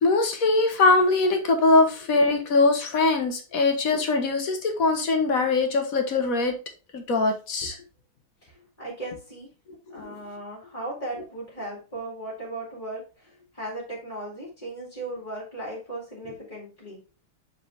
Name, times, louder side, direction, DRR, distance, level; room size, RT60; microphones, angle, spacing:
voice 1, 0.0-6.6 6.9-7.8 9.9-10.2, left 3 dB, 50° left, 5 dB, 1.4 m, -22 dB
voice 2, 8.4-9.5 9.9-17.0, right 2 dB, 15° left, -3 dB, 2.2 m, -37 dB
7.5 x 4.4 x 3.5 m, 0.33 s
omnidirectional pair, 2.3 m